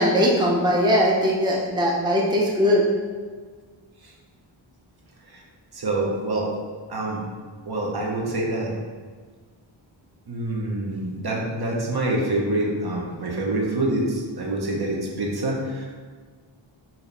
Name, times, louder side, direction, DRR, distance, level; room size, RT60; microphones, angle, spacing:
voice 1, 0.0-2.8, equal, 10° right, -3 dB, 0.6 m, -20 dB
voice 2, 5.7-6.5 6.9-7.2 7.7-8.7 10.3-15.9, right 2 dB, 55° right, -2 dB, 0.9 m, -26 dB
4.5 x 2.9 x 3.3 m, 1.5 s
wide cardioid pair, 90°, 47 cm